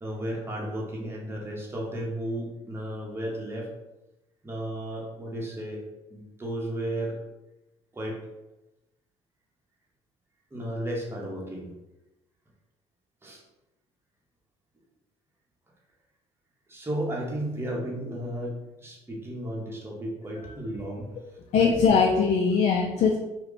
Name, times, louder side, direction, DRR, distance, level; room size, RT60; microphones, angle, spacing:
voice 1, 0.0-3.7 4.4-5.8 6.1-7.2 7.9-8.2 10.5-11.7 13.2-13.4 16.7-21.1 22.7-22.8, right 1 dB, 15° right, -3 dB, 0.9 m, -34 dB
voice 2, 21.5-23.2, left 5 dB, 50° left, 1 dB, 0.4 m, -21 dB
2.3 x 2.2 x 3.8 m, 0.98 s
hypercardioid pair, 65°, 15 cm